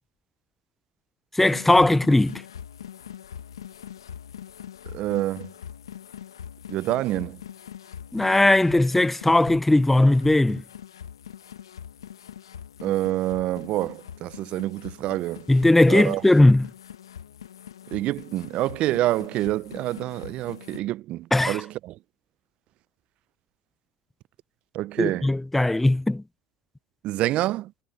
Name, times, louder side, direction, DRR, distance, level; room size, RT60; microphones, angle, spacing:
voice 1, 1.3-2.4 8.1-10.6 15.5-16.7 21.3-21.6 25.0-26.2, left 2 dB, 10° left, 0.7 m, -18 dB
sound 1, 1.4-20.8, left 9 dB, 90° left, 1.4 m, -43 dB
voice 2, 4.9-5.5 6.7-7.4 12.8-15.5 15.9-16.2 17.9-22.0 24.7-25.3 27.0-27.7, right 15 dB, 55° right, 0.6 m, -27 dB
hypercardioid pair, 80°, 2 cm